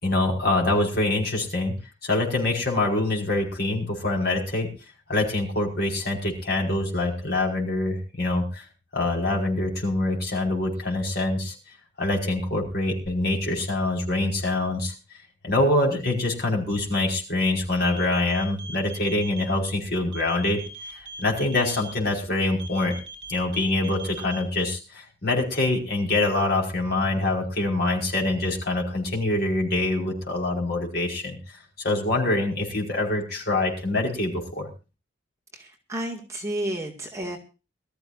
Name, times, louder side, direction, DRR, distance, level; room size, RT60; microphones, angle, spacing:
voice 1, 0.0-1.7 2.0-4.7 5.1-8.7 8.9-11.5 12.0-14.9 15.4-20.6 21.2-23.0 23.3-31.4 31.8-34.7, left 2 dB, 55° left, 0 dB, 5.3 m, -25 dB
sound 1, 17.8-19.4 20.1-21.9 22.6-24.4, right 4 dB, 60° right, 5.0 m, -40 dB
voice 2, 35.5-37.4, right 1 dB, 15° right, -1 dB, 2.1 m, -31 dB
23.0 x 14.0 x 2.6 m, 0.32 s
head